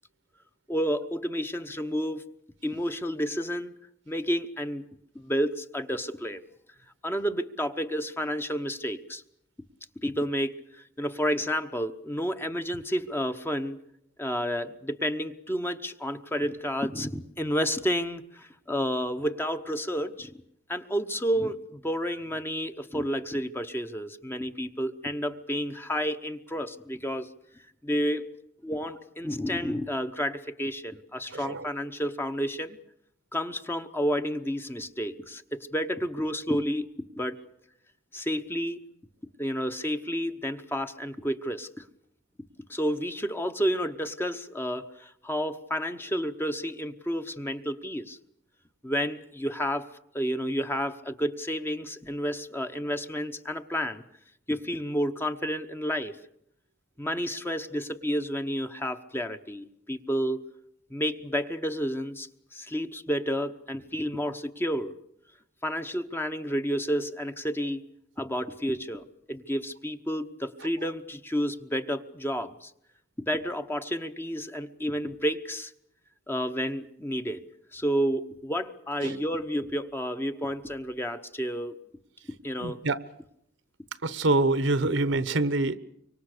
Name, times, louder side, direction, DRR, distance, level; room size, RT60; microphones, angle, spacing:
voice 1, 0.7-2.2 2.6-3.7 4.1-4.8 5.1-6.4 7.0-9.2 10.0-13.8 14.2-20.3 20.7-27.3 27.8-28.2 28.6-32.8 33.3-36.9 37.2-37.4 38.1-38.8 39.4-41.8 42.7-48.2 48.8-49.9 50.1-54.0 54.5-56.2 57.0-60.4 60.9-64.9 65.6-67.8 68.2-72.7 73.2-75.7 76.3-81.8 82.4-82.8, equal, 10° left, 8 dB, 1.0 m, -30 dB
voice 2, 31.3-31.6 79.0-79.2 82.6-83.0 84.0-85.8, right 2 dB, 70° right, 15 dB, 1.0 m, -25 dB
25.0 x 24.5 x 6.7 m, 0.74 s
head